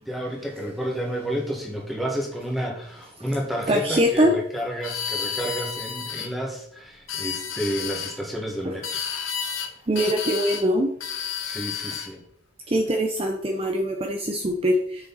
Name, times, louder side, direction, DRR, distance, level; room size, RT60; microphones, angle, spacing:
voice 1, 0.0-9.0 11.4-12.2, equal, ahead, -2 dB, 1.9 m, -30 dB
voice 2, 3.7-4.4 8.6-8.7 9.9-10.9 12.7-15.1, equal, 30° right, 3 dB, 0.7 m, -23 dB
sound 1, 4.8-6.3 6.9-8.2 8.8-9.7 10.0-10.7 11.0-12.1, left 7 dB, 85° left, 1.1 m, -31 dB
7.8 x 6.6 x 4.2 m, 0.69 s
head